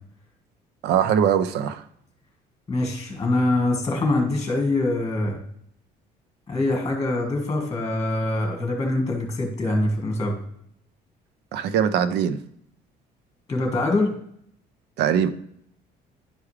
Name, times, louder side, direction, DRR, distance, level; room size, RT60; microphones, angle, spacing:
voice 1, 0.8-1.8 11.5-12.4 15.0-15.3, right 8 dB, 80° right, 0.6 m, -21 dB
voice 2, 2.7-5.4 6.5-10.4 13.5-14.1, left 2 dB, 20° left, 1.6 m, -24 dB
10.0 x 4.8 x 3.2 m
cardioid pair, 110°, 17 cm